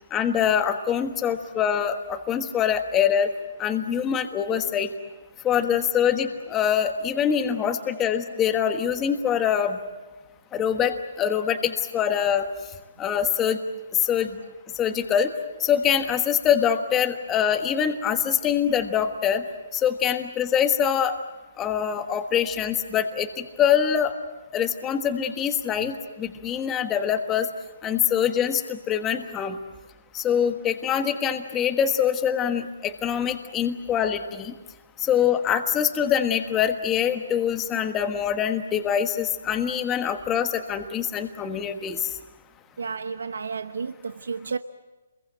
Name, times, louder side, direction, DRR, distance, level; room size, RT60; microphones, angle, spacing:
voice 1, 0.1-3.3 3.6-4.9 5.4-9.8 10.5-12.5 13.0-13.6 14.0-14.4 14.7-15.3 15.6-19.4 19.7-21.2 21.6-24.1 24.5-27.5 27.8-29.6 30.1-34.5 35.0-42.0, left 8 dB, 15° left, 1.3 m, -24 dB
voice 2, 42.8-44.6, right 5 dB, 90° right, 0.9 m, -31 dB
27.5 x 22.0 x 7.8 m
hypercardioid pair, 160°, 0 cm